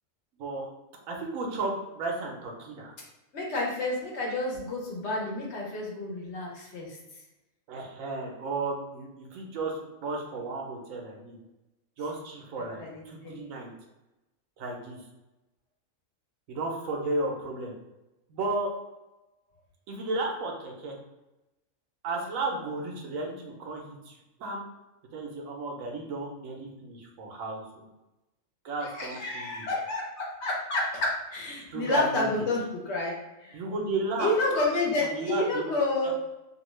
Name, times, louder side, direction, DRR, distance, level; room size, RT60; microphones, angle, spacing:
voice 1, 0.4-0.7 1.1-3.0 7.7-11.4 12.0-13.7 14.6-15.0 16.5-17.7 18.3-18.7 19.9-21.0 22.0-24.1 24.4-24.6 25.1-27.9 28.6-29.7 31.6-32.5 33.5-34.3 35.0-35.7 36.0-36.1, right 2 dB, 80° right, 0 dB, 1.0 m, -34 dB
voice 2, 3.3-7.0 12.6-13.5 28.8-33.1 33.4-33.6 34.2-36.1, left 2 dB, 60° left, -2 dB, 1.0 m, -30 dB
2.7 x 2.2 x 3.0 m, 0.99 s
omnidirectional pair, 1.4 m